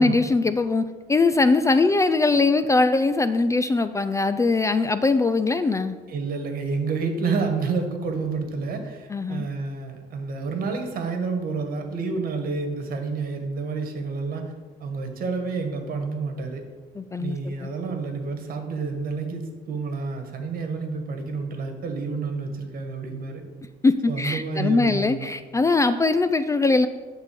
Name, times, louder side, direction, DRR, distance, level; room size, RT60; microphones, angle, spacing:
voice 1, 0.0-6.0 9.1-9.5 17.0-17.7 23.8-26.9, left 3 dB, 20° left, 11 dB, 0.4 m, -21 dB
voice 2, 6.1-14.5 14.8-16.6 17.2-23.4 24.1-25.3, right 4 dB, 60° right, 5 dB, 1.6 m, -29 dB
11.0 x 3.8 x 6.8 m, 1.4 s
cardioid pair, 110°, 17 cm